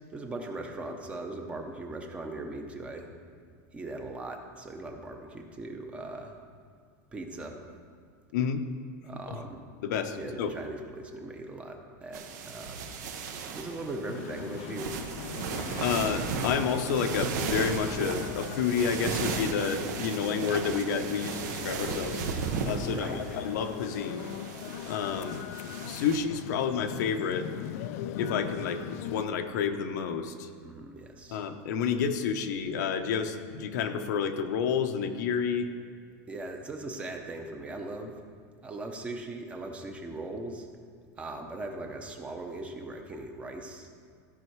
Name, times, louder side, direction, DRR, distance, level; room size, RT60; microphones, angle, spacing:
voice 1, 0.1-3.1 3.7-6.4 7.1-7.7 9.0-9.7 10.2-12.8 13.5-15.0 22.9-23.4 30.6-31.4 36.3-38.2 38.6-40.7 41.2-43.9, right 2 dB, 10° right, 4 dB, 0.7 m, -39 dB
voice 2, 8.3-8.6 9.3-9.4 9.8-10.5 15.8-22.2 22.6-24.3 24.9-25.4 25.8-27.5 28.2-30.5 31.3-35.7, left 6 dB, 75° left, 6 dB, 0.8 m, -30 dB
sound 1, 12.1-26.2, right 5 dB, 80° right, 1.1 m, -35 dB
sound 2, 14.1-29.3, left 11 dB, 60° left, 0.3 m, -41 dB
14.5 x 5.4 x 4.7 m, 2.1 s
supercardioid pair, 175°, 9 cm